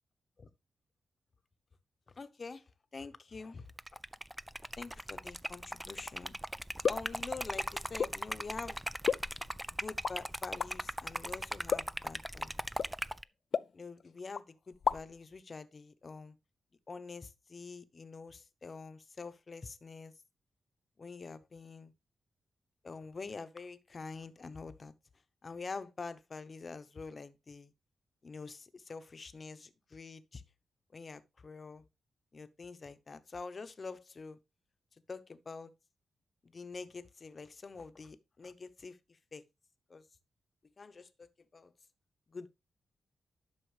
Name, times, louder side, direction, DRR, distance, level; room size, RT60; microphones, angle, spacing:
voice 1, 2.2-3.7 4.8-6.3 6.9-8.8 9.7-12.6 13.7-16.4 16.9-20.1 21.0-21.9 22.8-24.9 25.4-27.7 28.2-30.4 30.9-31.9 32.3-34.4 35.1-35.7 36.4-39.5 39.9-40.0 40.8-41.7 42.3-42.5, left 4 dB, 40° left, 0.9 m, -46 dB
Liquid, 3.7-13.2, equal, 5° right, 0.4 m, -39 dB
sound 1, 6.8-7.2 8.0-8.2 9.0-9.6 10.0-10.2 10.6-10.7 11.7-12.0 12.8-12.9 13.5-14.1 14.3-14.4 14.7-15.2, left 6 dB, 60° left, 0.4 m, -33 dB
11.5 x 6.2 x 3.2 m
wide cardioid pair, 110°, 0 cm